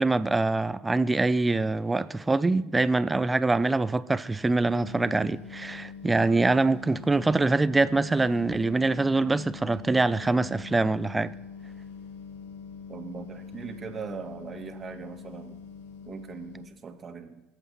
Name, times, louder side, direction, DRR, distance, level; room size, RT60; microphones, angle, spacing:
voice 1, 0.0-11.3, right 3 dB, 15° right, 0.7 m, -24 dB
sound 1, 4.8-16.7, left 6 dB, 85° left, 1.0 m, -43 dB
voice 2, 12.9-15.6 16.1-17.4, right 5 dB, 40° right, 2.1 m, -40 dB
21.5 x 8.2 x 4.2 m
supercardioid pair, 75°, 0 cm